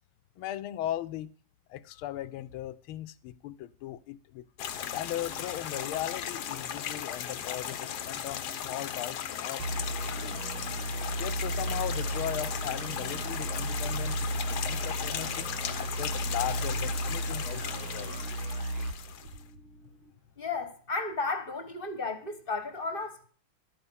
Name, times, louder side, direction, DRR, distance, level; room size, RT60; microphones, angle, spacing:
voice 1, 0.4-1.3 1.7-4.5 4.9-9.7 10.2-10.5 11.2-15.5 16.0-18.2, left 13 dB, 75° left, 1.5 m, -38 dB
sound 1, 4.6-19.4, left 9 dB, 60° left, 1.2 m, -37 dB
sound 2, 9.6-19.9, right 1 dB, 75° right, 1.9 m, -34 dB
voice 2, 20.4-23.2, left 3 dB, 30° left, 1.3 m, -34 dB
12.5 x 8.9 x 5.6 m
omnidirectional pair, 2.4 m